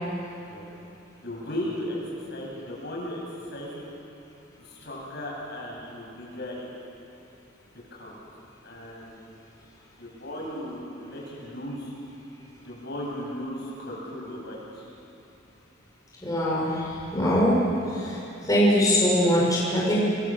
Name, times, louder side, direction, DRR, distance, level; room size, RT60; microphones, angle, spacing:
voice 1, 1.2-2.0 2.3-3.8 4.6-6.7 7.9-8.1 8.6-9.2 10.0-11.9 12.6-14.9 17.7-17.8, left 1 dB, 60° left, -3 dB, 7.8 m, -36 dB
voice 2, 16.2-17.5 17.9-18.2 18.4-20.0, equal, 20° left, -6 dB, 6.5 m, -22 dB
27.0 x 23.0 x 7.7 m, 2.9 s
head